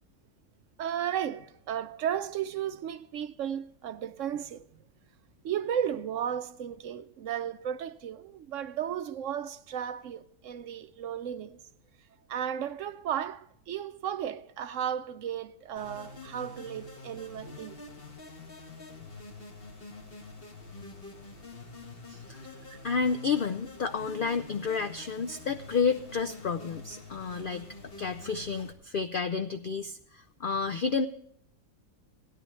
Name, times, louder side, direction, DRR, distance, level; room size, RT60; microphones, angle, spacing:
voice 1, 0.8-4.6 5.4-11.6 12.3-17.8 22.7-22.8, right 9 dB, 65° right, 0.8 m, -34 dB
sound 1, 15.8-28.7, left 2 dB, 40° left, 1.6 m, -46 dB
voice 2, 22.8-27.7 28.0-31.1, left 5 dB, 80° left, 0.4 m, -30 dB
17.0 x 10.5 x 3.2 m
omnidirectional pair, 1.6 m